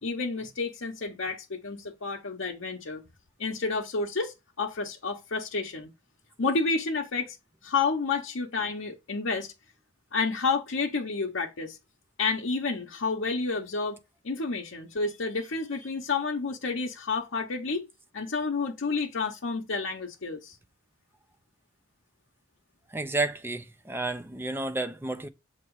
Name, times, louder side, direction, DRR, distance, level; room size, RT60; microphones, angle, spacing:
voice 1, 0.0-3.0 3.4-5.9 6.4-7.4 7.6-9.5 10.1-11.8 12.2-14.0 14.2-17.8 18.1-20.6, left 4 dB, 65° left, 0.8 m, -30 dB
voice 2, 22.9-25.3, right 2 dB, 10° right, 0.5 m, -31 dB
7.0 x 2.9 x 4.6 m
head